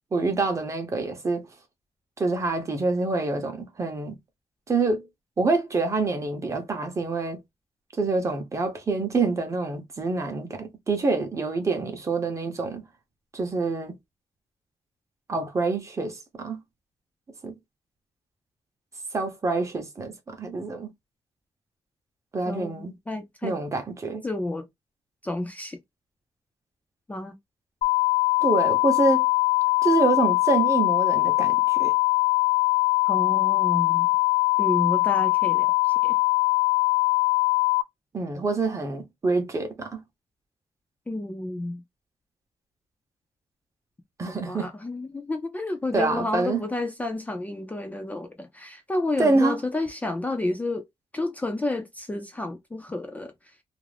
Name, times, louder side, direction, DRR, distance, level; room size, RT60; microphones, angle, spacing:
voice 1, 0.1-1.5 2.2-4.2 4.7-5.0 5.4-7.4 8.0-12.8 13.3-13.9 15.3-16.6 17.4-17.5 19.1-20.9 22.3-22.9 23.4-24.2 28.4-29.3 29.8-31.9 38.1-40.0 44.2-44.7 45.9-46.6 49.2-49.6, right 3 dB, 30° right, 0.7 m, -26 dB
voice 2, 22.5-23.6 24.2-24.7 25.2-25.8 27.1-27.4 33.1-34.1 34.6-36.1 41.1-41.8 44.3-50.8 51.1-53.3, left 2 dB, 15° left, 0.4 m, -30 dB
sound 1, 27.8-37.8, left 20 dB, 75° left, 0.5 m, -22 dB
2.4 x 2.0 x 3.1 m
wide cardioid pair, 145°, 11 cm